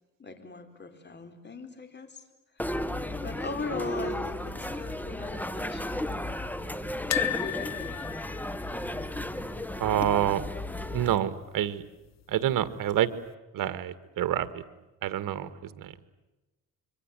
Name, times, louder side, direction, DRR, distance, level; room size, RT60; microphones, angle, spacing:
voice 1, 0.2-2.2 2.6-2.7 3.2-5.9 6.6-7.0 7.4-7.9, left 4 dB, 30° left, 8 dB, 4.4 m, -40 dB
sound 1, 2.6-11.2, left 1 dB, 5° left, 1.6 m, -34 dB
sound 2, 7.1-10.2 10.4-10.6 10.9-11.0 12.2-12.7 13.3-13.4, left 13 dB, 50° left, 0.9 m, -35 dB
voice 2, 9.8-10.4 10.9-11.8 12.3-13.1 13.5-14.6 15.0-15.5 15.8-15.9, right 11 dB, 70° right, 13 dB, 1.8 m, -27 dB
26.0 x 24.0 x 9.1 m, 1.1 s
cardioid pair, 100°, 34 cm